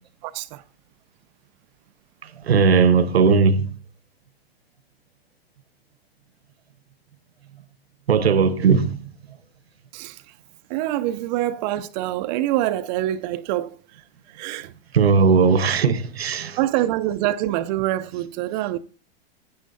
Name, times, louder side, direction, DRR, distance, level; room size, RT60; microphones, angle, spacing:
voice 1, 0.2-0.6 9.9-10.2 10.7-13.8 14.3-14.7 16.6-18.8, right 14 dB, 45° right, 0.6 m, -25 dB
voice 2, 2.4-3.7 8.1-9.1 14.9-16.6, right 5 dB, 85° right, 1.2 m, -17 dB
16.0 x 9.6 x 2.7 m
hypercardioid pair, 110°, 30 cm